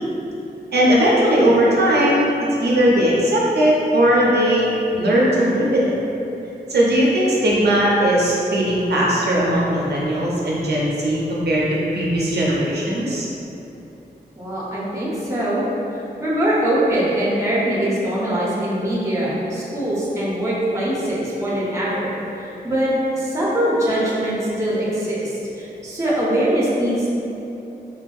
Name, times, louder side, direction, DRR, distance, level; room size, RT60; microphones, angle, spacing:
voice 1, 0.7-2.3 2.6-5.9 6.7-11.6 11.9-13.3, equal, 70° right, -5 dB, 0.5 m, -18 dB
voice 2, 14.4-27.1, right 1 dB, 15° right, -7 dB, 0.6 m, -22 dB
3.3 x 2.6 x 2.3 m, 2.9 s
wide cardioid pair, 125°, 17 cm